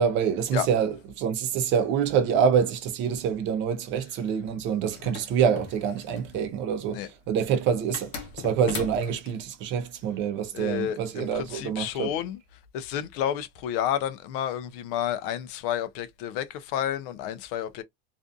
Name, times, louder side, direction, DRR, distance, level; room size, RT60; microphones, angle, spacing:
voice 1, 0.0-12.1, right 7 dB, 40° right, 0.6 m, -26 dB
sound 1, 4.9-6.4 7.9-9.4, left 6 dB, 75° left, 0.8 m, -38 dB
voice 2, 10.5-12.4 12.7-17.8, left 10 dB, 60° left, 0.5 m, -30 dB
2.5 x 2.3 x 2.5 m
cardioid pair, 165°, 31 cm